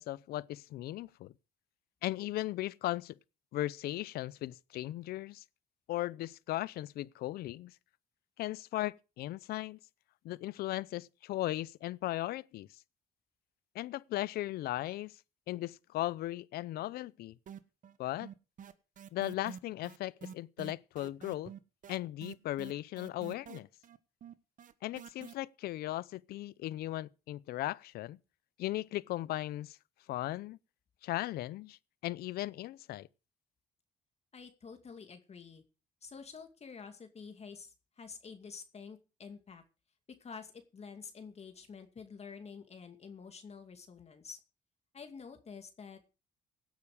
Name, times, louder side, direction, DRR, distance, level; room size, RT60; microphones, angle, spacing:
voice 1, 0.0-1.3 2.0-3.2 3.5-5.4 5.9-7.7 8.4-9.8 10.2-12.7 13.7-15.2 15.5-17.4 18.0-18.3 19.1-21.5 21.9-23.7 24.8-28.2 28.6-29.8 30.1-30.6 31.0-33.1, left 15 dB, 75° left, 0.7 m, -37 dB
sound 1, 17.5-18.0 18.2-25.3, right 8 dB, 55° right, 1.3 m, -48 dB
voice 2, 34.3-35.6 36.0-39.6 40.1-44.4 44.9-46.0, left 5 dB, 40° left, 2.4 m, -49 dB
17.0 x 9.4 x 5.0 m
supercardioid pair, 80°, 16 cm